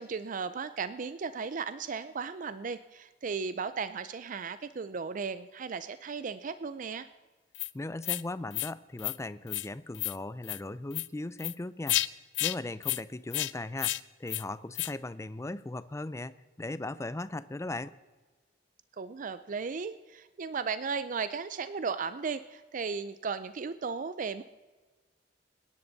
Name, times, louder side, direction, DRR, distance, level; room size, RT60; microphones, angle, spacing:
voice 1, 0.0-7.1 19.0-24.4, right 5 dB, 45° right, 13 dB, 0.4 m, -36 dB
sound 1, 7.5-7.7 8.0-8.2 8.5-8.7 9.0-9.2 9.5-9.7 9.9-10.2 10.4-10.6 10.9-11.1 11.4-11.5 11.9-12.1 12.3-12.6 12.8-13.0 13.3-13.5 13.8-14.0 14.3-14.4 14.7-14.9, left 16 dB, 85° left, 0.5 m, -31 dB
voice 2, 7.7-12.0 12.4-18.0, left 2 dB, 15° left, 16 dB, 0.4 m, -38 dB
25.0 x 10.5 x 4.0 m, 1.3 s
head